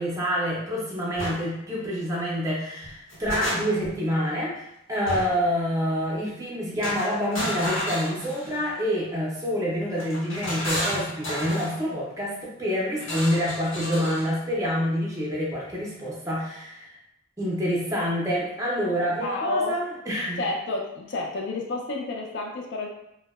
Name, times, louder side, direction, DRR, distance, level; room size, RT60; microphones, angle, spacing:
voice 1, 0.0-17.0 17.4-20.5, equal, 15° right, -5 dB, 0.5 m, -27 dB
metal pan crashes, 1.2-1.4 2.8-3.9 5.1-5.5 6.8-8.7 10.0-11.8 13.0-14.3, equal, 75° left, 0.9 m, -31 dB
voice 2, 19.2-19.8 20.4-22.9, left 2 dB, 60° left, 1 dB, 0.4 m, -30 dB
2.6 x 2.0 x 2.3 m, 0.82 s
head